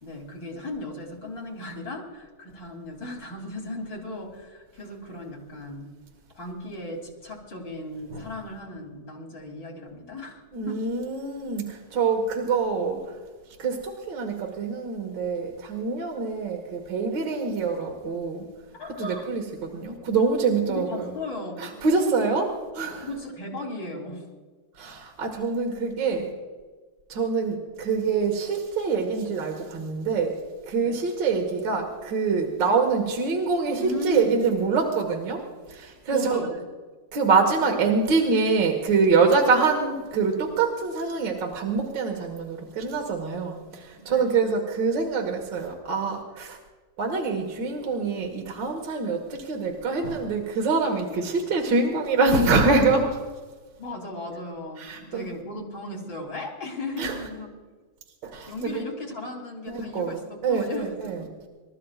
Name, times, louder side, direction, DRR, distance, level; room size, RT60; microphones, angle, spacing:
voice 1, 0.0-5.9 6.3-10.8 18.8-19.3 20.7-21.8 23.0-24.3 30.8-31.0 33.8-34.3 36.1-36.6 44.0-44.4 53.8-57.5 58.5-61.3, left 2 dB, 65° left, 0 dB, 3.9 m, -36 dB
voice 2, 10.5-13.1 13.6-18.5 19.0-21.1 21.6-23.1 24.8-26.3 27.1-30.4 30.7-35.4 35.7-36.4 37.1-46.6 47.0-53.2 54.8-55.3 57.0-57.2 58.2-58.8 59.7-61.3, right 4 dB, 65° right, 1 dB, 2.3 m, -25 dB
28.5 x 14.5 x 2.5 m, 1.4 s
omnidirectional pair, 2.2 m